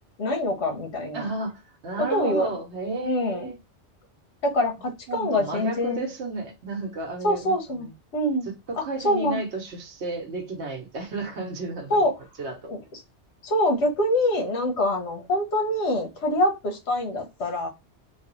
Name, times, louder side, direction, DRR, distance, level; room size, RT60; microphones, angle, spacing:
voice 1, 0.2-1.3 2.1-2.5 3.0-3.5 4.4-6.1 7.2-7.9 8.1-8.5 9.0-9.4 11.9-12.1 12.7-13.0 13.4-17.7, left 1 dB, 70° left, 1.2 m, -25 dB
voice 2, 1.1-3.5 5.1-7.9 8.7-12.1 12.4-12.7, right 3 dB, 75° right, 1.1 m, -32 dB
3.1 x 2.2 x 2.9 m
omnidirectional pair, 1.2 m